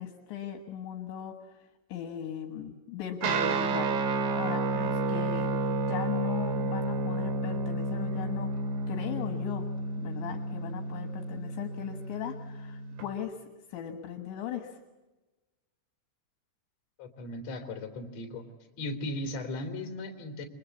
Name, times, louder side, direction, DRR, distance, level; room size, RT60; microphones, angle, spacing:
voice 1, 0.0-1.6 1.9-5.5 5.9-8.5 8.9-13.4 13.7-14.8, left 9 dB, 70° left, 7 dB, 3.5 m, -38 dB
Guitar, 3.2-13.0, right 2 dB, 70° right, 4.4 m, -31 dB
voice 2, 17.0-18.4 18.8-20.5, left 2 dB, 40° left, 5 dB, 3.6 m, -37 dB
29.0 x 24.0 x 8.3 m, 1.1 s
omnidirectional pair, 5.8 m